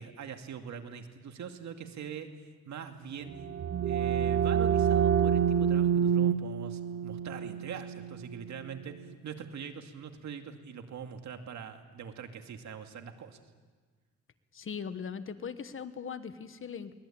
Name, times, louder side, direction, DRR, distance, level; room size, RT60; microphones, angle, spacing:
voice 1, 0.0-3.3 3.8-13.4, right 7 dB, 65° right, 5 dB, 2.4 m, -43 dB
sound 1, 3.2-8.8, right 8 dB, 45° right, 0.8 m, -28 dB
voice 2, 14.5-16.9, left 6 dB, 45° left, 11 dB, 1.5 m, -39 dB
23.5 x 19.5 x 8.8 m, 1.4 s
cardioid pair, 90°, 30 cm